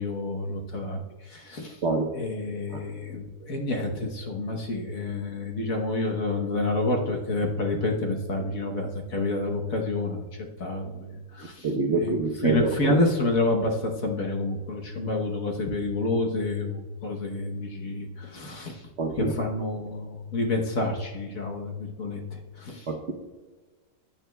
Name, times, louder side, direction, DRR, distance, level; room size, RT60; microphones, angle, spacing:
voice 1, 0.0-1.8 2.1-10.3 10.6-11.7 12.0-18.8 19.1-22.9, left 2 dB, 50° left, 1 dB, 1.3 m, -29 dB
voice 2, 11.6-13.0 19.0-19.3 22.9-23.1, right 4 dB, 55° right, 2 dB, 0.8 m, -25 dB
15.5 x 9.3 x 2.2 m, 1.2 s
omnidirectional pair, 2.1 m